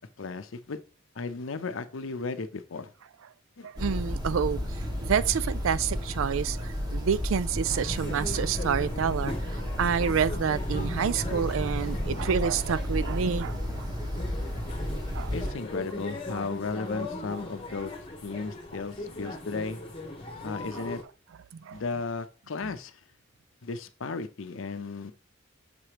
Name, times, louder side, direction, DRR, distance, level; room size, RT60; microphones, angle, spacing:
voice 1, 0.2-0.8 1.2-2.9 3.6-3.7 15.3-17.9 18.2-19.8 20.4-21.0 21.7-23.0 23.6-25.1, left 4 dB, 75° left, 0.6 m, -35 dB
voice 2, 3.6-4.6 5.0-13.9 15.1-15.3 20.7-20.9 21.5-21.8 22.6-22.7, right 7 dB, 80° right, 0.4 m, -28 dB
sound 1, 3.8-15.5, equal, 20° right, 1.3 m, -32 dB
sound 2, 7.6-21.0, left 2 dB, 30° left, 1.1 m, -39 dB
6.8 x 3.0 x 4.9 m
head